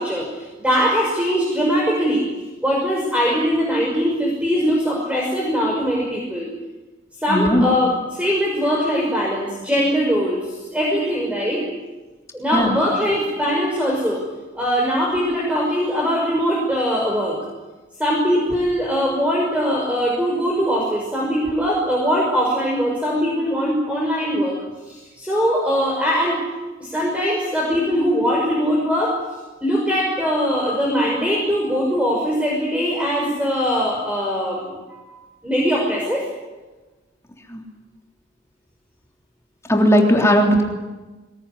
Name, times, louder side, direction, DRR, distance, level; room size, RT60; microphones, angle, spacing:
voice 1, 0.0-2.2 2.6-6.5 7.2-11.6 12.3-14.2 14.5-17.4 18.0-24.6 24.9-26.4 26.8-29.2 29.6-35.2 35.4-36.2, equal, 5° right, -2 dB, 6.0 m, -21 dB
voice 2, 7.3-7.7 12.5-12.8 37.5-37.6 39.7-40.6, equal, 15° left, 1 dB, 3.4 m, -16 dB
23.5 x 21.5 x 9.9 m, 1.2 s
head